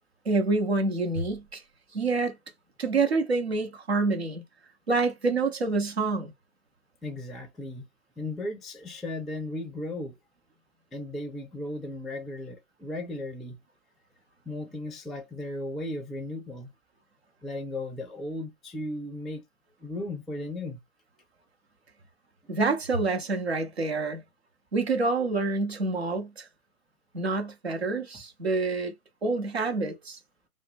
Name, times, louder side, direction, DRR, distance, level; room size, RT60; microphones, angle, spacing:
voice 1, 0.2-1.6 1.9-2.4 2.8-4.4 4.9-6.3 22.5-24.2 24.7-26.5 27.1-28.9 29.2-30.2, right 3 dB, 45° right, 0.8 m, -27 dB
voice 2, 7.0-7.9 8.2-10.2 10.9-13.6 14.5-16.7 17.4-19.4 19.8-20.8 22.4-22.5, left 1 dB, ahead, 0.3 m, -36 dB
4.0 x 2.1 x 3.3 m
hypercardioid pair, 170°, 46 cm